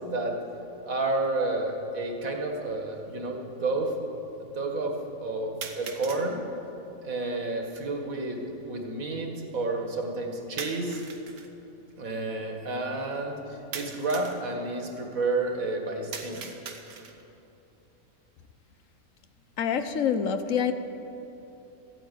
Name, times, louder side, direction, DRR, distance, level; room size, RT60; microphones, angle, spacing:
voice 1, 0.1-0.4 0.8-3.9 4.4-6.4 7.0-11.0 12.0-16.4, right 2 dB, 70° right, 3 dB, 2.0 m, -30 dB
sound 1, 1.2-1.3 2.3-2.4 5.6-6.3 10.6-11.5 13.7-14.4 16.1-17.3, right 6 dB, 85° right, 1.6 m, -40 dB
voice 2, 19.6-20.7, left 7 dB, 65° left, 9 dB, 1.1 m, -26 dB
14.0 x 9.0 x 9.0 m, 3.0 s
omnidirectional pair, 1.5 m